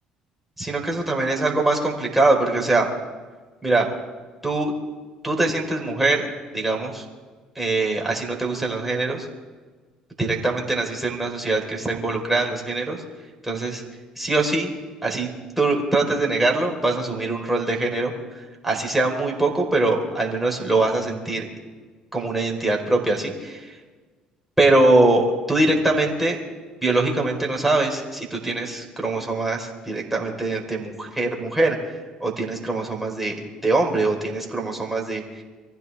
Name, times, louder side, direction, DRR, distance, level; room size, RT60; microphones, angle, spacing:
voice 1, 0.6-2.9 3.6-3.9 4.4-4.7 5.2-6.2 6.5-7.0 7.5-9.3 10.2-13.0 13.4-13.8 14.2-14.7 15.0-15.3 15.6-18.1 18.6-21.5 22.1-23.7 24.6-26.4 26.8-31.8 32.2-33.3 33.6-35.2, right 2 dB, 5° right, -1 dB, 4.6 m, -22 dB
24.5 x 15.0 x 3.6 m, 1.3 s
hypercardioid pair, 55°, 3 cm